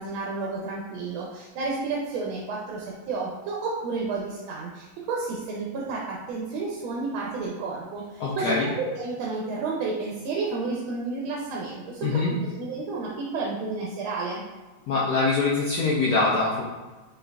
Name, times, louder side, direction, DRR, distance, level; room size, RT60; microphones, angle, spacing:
voice 1, 0.0-14.4, right 3 dB, 90° right, -3 dB, 1.4 m, -31 dB
voice 2, 8.2-8.6 12.0-12.3 14.9-16.6, left 3 dB, 70° left, -6 dB, 0.8 m, -23 dB
4.4 x 3.9 x 2.3 m, 1.2 s
omnidirectional pair, 2.2 m